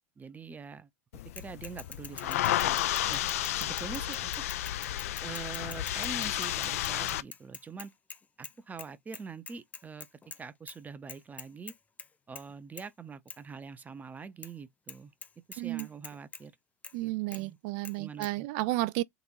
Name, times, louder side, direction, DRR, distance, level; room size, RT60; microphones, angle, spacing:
voice 1, 0.2-0.9 1.3-3.2 3.6-4.4 5.2-7.9 8.4-10.1 10.4-11.7 12.3-15.1 15.5-16.5 17.0-17.6 18.0-18.5, right 5 dB, 20° right, 0.8 m, -44 dB
sound 1, 1.1-7.2, left 13 dB, 75° left, 0.4 m, -32 dB
Bicycle / Mechanisms, 1.4-8.5 8.8-8.9 9.1-10.4 10.7-10.8 11.1-12.1 12.3-12.5 12.8-12.9 13.3-13.4 14.4-14.5 14.9-15.0 15.2-16.4 16.8-16.9 17.3-17.4 17.8-17.9 18.2-18.3, left 5 dB, 20° left, 0.6 m, -44 dB
voice 2, 15.6-15.9 16.9-19.0, right 18 dB, 60° right, 0.5 m, -32 dB
3.9 x 2.5 x 4.5 m
hypercardioid pair, 90°, 8 cm